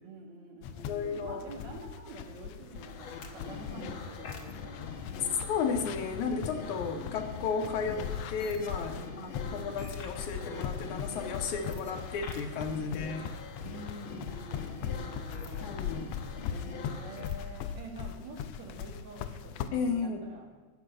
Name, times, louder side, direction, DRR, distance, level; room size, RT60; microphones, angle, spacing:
voice 1, 0.0-5.1 8.9-9.8 13.6-16.0 16.5-20.5, right 2 dB, 60° right, 1 dB, 3.1 m, -47 dB
sound 1, 0.6-19.7, left 8 dB, 85° left, 1.5 m, -40 dB
voice 2, 0.9-1.4 5.5-13.2 15.6-16.1 19.7-20.2, left 5 dB, 70° left, 6 dB, 2.2 m, -34 dB
sound 2, 2.7-17.5, left 4 dB, 55° left, 1.5 m, -44 dB
13.0 x 5.8 x 8.8 m, 1.4 s
omnidirectional pair, 3.7 m